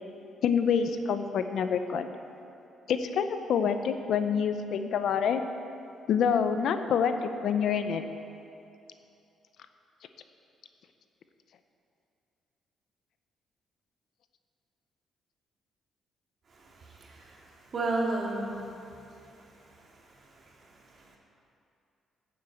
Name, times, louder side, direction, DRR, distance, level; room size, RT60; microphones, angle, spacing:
voice 1, 0.4-2.1 2.9-5.4 6.1-8.0, left 7 dB, 70° left, 9 dB, 0.7 m, -27 dB
voice 2, 16.5-21.2, right 2 dB, 50° right, -2 dB, 2.4 m, -36 dB
9.1 x 7.9 x 7.9 m, 2.7 s
cardioid pair, 90°, 0 cm